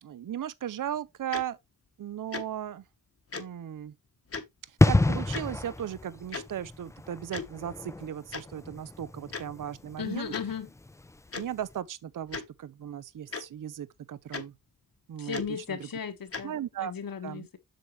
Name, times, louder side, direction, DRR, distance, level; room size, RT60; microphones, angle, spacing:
voice 1, 0.0-1.6 2.0-2.8 3.3-3.9 4.7-10.3 11.3-14.5 15.1-15.9 16.4-16.9 17.2-17.5, right 10 dB, 65° right, 0.6 m, -37 dB
Tick-tock, 1.3-1.4 2.3-2.4 3.3-3.4 4.3-4.4 5.3-5.4 6.3-6.4 7.3-7.5 8.3-8.4 9.3-9.4 10.3-10.4 11.3-11.4 12.3-12.4 13.3-13.4 14.3-14.4 15.3-15.5 16.3-16.4, left 4 dB, 40° left, 1.1 m, -36 dB
sound 1, 4.8-11.3 11.6-11.7, left 2 dB, 10° left, 0.3 m, -29 dB
voice 2, 10.0-10.7 15.2-17.6, left 7 dB, 75° left, 1.5 m, -36 dB
7.7 x 6.3 x 3.1 m
wide cardioid pair, 90°, 34 cm